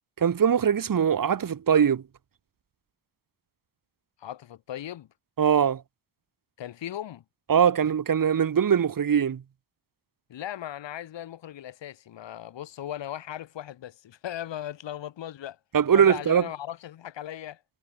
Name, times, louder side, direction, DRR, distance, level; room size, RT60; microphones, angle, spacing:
voice 1, 0.2-2.0 5.4-5.8 7.5-9.4 15.7-16.4, right 8 dB, 45° right, 2.6 m, -21 dB
voice 2, 4.2-5.1 6.6-7.2 10.3-15.6 15.9-17.6, left 11 dB, 65° left, 5.1 m, -37 dB
supercardioid pair, 65°, 47 cm